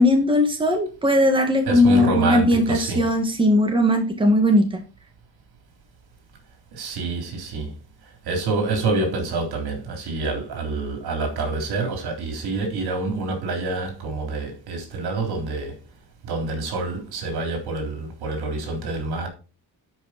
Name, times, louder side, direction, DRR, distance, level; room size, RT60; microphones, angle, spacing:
voice 1, 0.0-4.8, left 1 dB, 15° right, 2.1 m, -18 dB
voice 2, 1.7-3.0 6.7-7.7 8.2-15.8 16.2-19.3, right 3 dB, 75° right, 3.7 m, -27 dB
12.0 x 5.5 x 4.3 m
cardioid pair, 115°, 39 cm